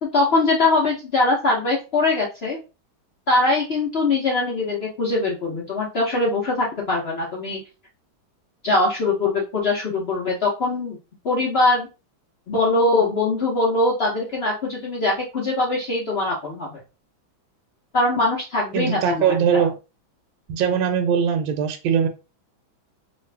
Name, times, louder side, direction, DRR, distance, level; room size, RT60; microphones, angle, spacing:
voice 1, 0.0-2.6 3.3-7.6 8.6-11.0 11.2-11.9 12.5-16.8 17.9-19.7, left 2 dB, 70° left, -3 dB, 0.6 m, -22 dB
voice 2, 18.7-19.8 20.5-22.1, right 7 dB, 80° right, 5 dB, 1.3 m, -21 dB
3.1 x 2.5 x 3.2 m, 0.29 s
omnidirectional pair, 2.2 m